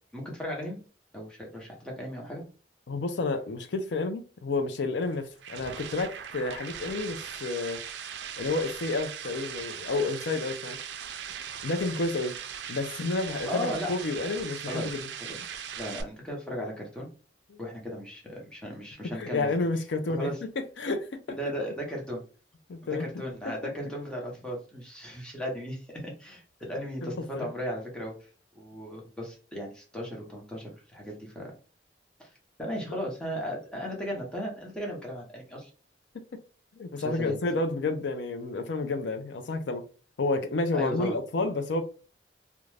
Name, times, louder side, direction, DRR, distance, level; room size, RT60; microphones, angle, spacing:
voice 1, 0.1-0.8 1.1-2.4 13.5-13.9 14.7-17.1 17.6-19.5 20.1-20.4 21.4-22.2 22.8-28.1 28.5-31.5 32.2-32.3 32.6-35.7 36.9-37.3 40.7-41.1, equal, 5° left, 0.9 m, -36 dB
voice 2, 2.9-7.8 8.4-10.8 11.6-12.4 12.7-15.0 15.3-15.5 17.5-17.6 19.0-20.3 20.8-21.4 22.7-23.2 27.0-27.5 36.8-39.9 40.2-41.8, left 3 dB, 85° left, 0.5 m, -30 dB
sound 1, 5.0-16.0, right 8 dB, 80° right, 0.4 m, -39 dB
2.5 x 2.2 x 3.2 m
head